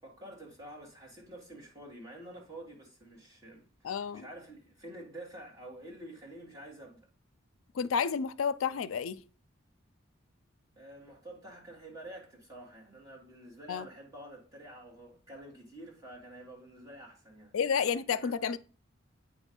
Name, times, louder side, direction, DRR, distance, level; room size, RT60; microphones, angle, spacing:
voice 1, 0.0-7.1 10.8-17.6 18.1-18.3, right 1 dB, 15° right, 1.8 m, -49 dB
voice 2, 3.8-4.3 7.7-9.2 13.7-13.9 17.5-18.6, left 6 dB, 85° left, 0.4 m, -30 dB
8.8 x 3.1 x 5.3 m
head